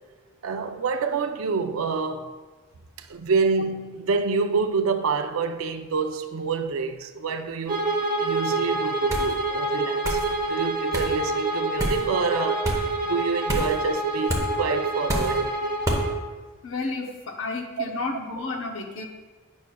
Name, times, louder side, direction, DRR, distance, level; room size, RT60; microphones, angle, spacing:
voice 1, 0.4-2.4 3.0-7.9 8.2-10.2 10.5-15.6 17.8-18.0, right 4 dB, 80° right, 0.5 m, -27 dB
Bowed string instrument, 7.7-16.2, right 2 dB, 40° right, 1.1 m, -27 dB
sound 1, 9.1-9.3 10.0-10.3 10.9-11.1 11.8-12.0 12.6-12.8 13.5-13.7 14.3-14.5 15.1-15.4 15.8-16.0, equal, 15° right, 0.9 m, -27 dB
voice 2, 16.6-19.0, left 3 dB, 65° left, 0.8 m, -31 dB
9.4 x 6.2 x 2.3 m
head